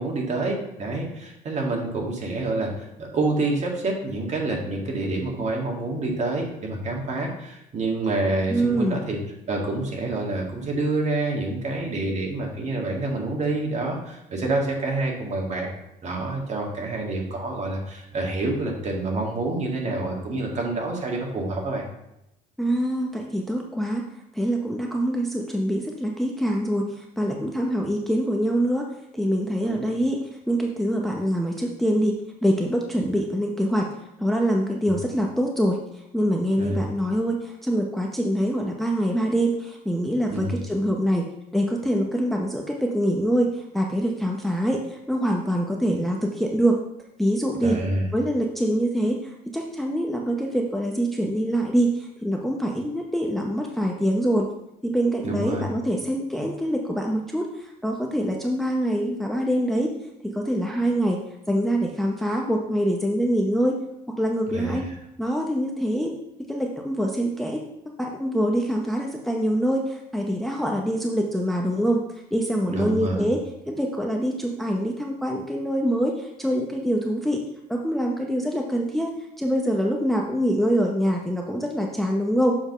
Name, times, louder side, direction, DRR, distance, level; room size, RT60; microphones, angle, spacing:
voice 1, 0.0-9.2 9.5-15.7 16.0-21.9 29.6-30.0 36.6-36.8 40.3-40.6 47.6-48.0 55.2-55.7 64.5-64.8 72.7-73.3, right 2 dB, 40° right, 0 dB, 1.8 m, -27 dB
voice 2, 8.5-9.0 22.6-24.0 24.3-28.9 29.1-32.1 32.4-33.9 34.2-35.8 36.1-46.8 47.2-47.8 48.1-54.5 54.8-59.9 60.2-63.8 64.1-64.8 65.2-66.1 66.5-67.6 68.0-72.0 72.3-77.4 77.7-79.1 79.4-82.6, equal, ahead, 1 dB, 0.7 m, -24 dB
7.3 x 3.5 x 5.3 m, 0.85 s
cardioid pair, 110°, 17 cm